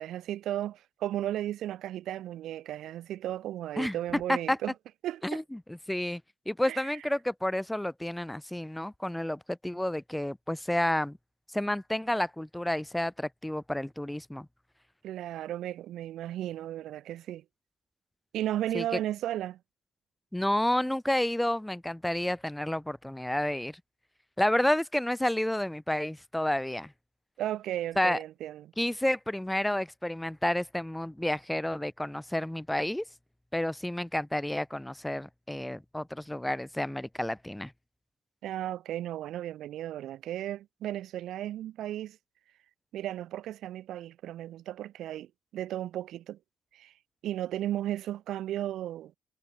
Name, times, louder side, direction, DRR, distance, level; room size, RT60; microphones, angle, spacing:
voice 1, 0.0-4.7 5.0-5.4 6.6-6.9 15.0-17.4 18.3-19.6 27.4-28.7 38.4-42.2 42.9-46.4 46.7-46.9 47.2-49.1, right 12 dB, 70° right, 0.5 m, -35 dB
voice 2, 3.8-4.6 5.2-5.6 5.9-6.2 6.5-11.2 11.5-14.5 18.7-18.8 20.3-23.8 24.4-26.9 28.0-28.2 28.8-33.0 33.5-37.7, left 1 dB, 5° left, 0.6 m, -30 dB
cardioid pair, 135°, 0 cm